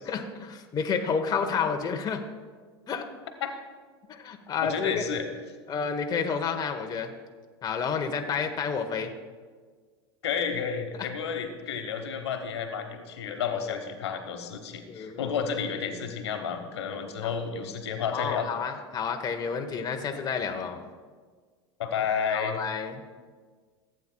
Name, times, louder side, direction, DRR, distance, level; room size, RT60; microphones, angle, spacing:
voice 1, 0.1-2.2 2.9-3.1 4.1-5.0 5.7-7.1 7.6-9.1 11.0-11.1 14.9-15.3 17.2-17.3 18.1-20.8 22.3-23.0, left 6 dB, 30° left, 4 dB, 0.9 m, -30 dB
voice 2, 4.6-5.2 10.2-18.5 21.8-22.6, left 6 dB, 80° left, 5 dB, 1.1 m, -31 dB
15.5 x 8.6 x 2.3 m, 1.5 s
hypercardioid pair, 95°, 14 cm